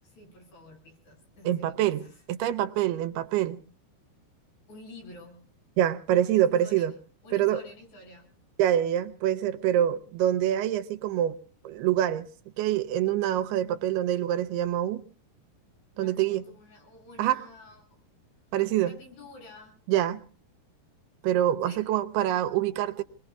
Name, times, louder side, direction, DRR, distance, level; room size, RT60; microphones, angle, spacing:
voice 1, 0.0-2.2 4.7-5.4 6.3-7.0 7.2-8.3 15.9-18.0 18.8-19.8 21.6-21.9, left 2 dB, 75° left, 9.3 m, -49 dB
voice 2, 1.5-2.0 2.3-3.6 5.8-6.9 7.3-7.6 8.6-11.4 11.6-12.3 12.6-15.0 16.0-16.4 17.2-17.4 18.5-18.9 19.9-20.2 21.2-23.0, right 12 dB, 80° right, 2.9 m, -25 dB
28.0 x 21.5 x 2.3 m
omnidirectional pair, 4.6 m